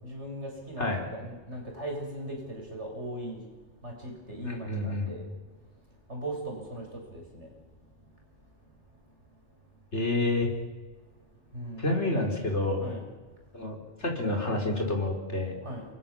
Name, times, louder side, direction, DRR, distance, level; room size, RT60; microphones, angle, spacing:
voice 1, 0.0-3.4 3.8-5.2 6.1-6.8 7.1-7.5 11.5-11.9 12.8-13.0 15.6-15.9, right 1 dB, 85° right, 1 dB, 7.7 m, -38 dB
voice 2, 4.4-5.1 9.9-10.5 11.8-12.9 13.5-15.6, left 2 dB, 80° left, 1 dB, 5.1 m, -29 dB
29.0 x 23.5 x 7.4 m, 1.3 s
omnidirectional pair, 1.2 m